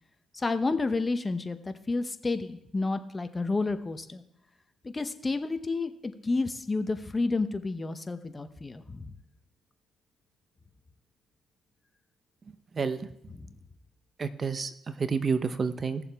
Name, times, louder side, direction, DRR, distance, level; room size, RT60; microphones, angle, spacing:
voice 1, 0.3-4.2 4.8-9.1, left 3 dB, 25° left, 10 dB, 0.8 m, -30 dB
voice 2, 12.7-13.3 14.2-16.0, right 5 dB, 40° right, 12 dB, 0.7 m, -30 dB
17.0 x 7.1 x 3.5 m, 0.78 s
cardioid pair, 90°, 0 cm